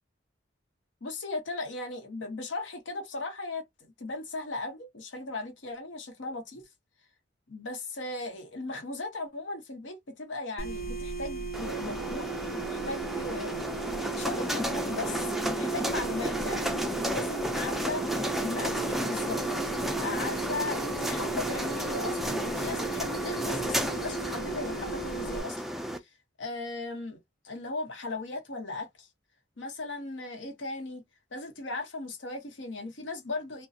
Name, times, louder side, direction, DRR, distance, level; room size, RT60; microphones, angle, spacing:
voice 1, 1.0-6.6 7.5-13.7 13.9-18.0 18.4-19.4 20.0-25.8 26.4-27.2 27.4-29.1 29.6-31.0 31.3-33.7, left 2 dB, 85° left, 0.9 m, -37 dB
sound 1, 10.6-25.4, right 5 dB, 55° left, 0.6 m, -37 dB
sound 2, 11.5-26.0, equal, ahead, 0.3 m, -32 dB
2.6 x 2.2 x 2.4 m
head